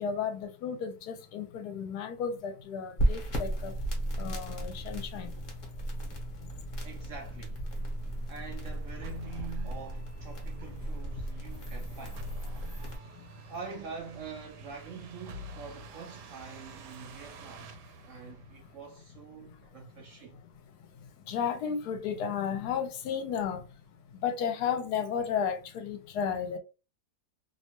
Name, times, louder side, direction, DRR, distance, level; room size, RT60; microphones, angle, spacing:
voice 1, 0.0-3.7 4.2-5.3 21.3-23.6 24.1-26.6, left 7 dB, 75° left, 1.1 m, -33 dB
sound 1, 3.0-13.0, right 1 dB, 40° left, 0.9 m, -35 dB
voice 2, 6.8-7.7 8.3-12.3 13.5-17.7 18.1-20.4, right 5 dB, 70° right, 0.7 m, -45 dB
sound 2, 7.6-19.1, equal, 85° right, 1.2 m, -49 dB
2.9 x 2.1 x 2.9 m
omnidirectional pair, 1.7 m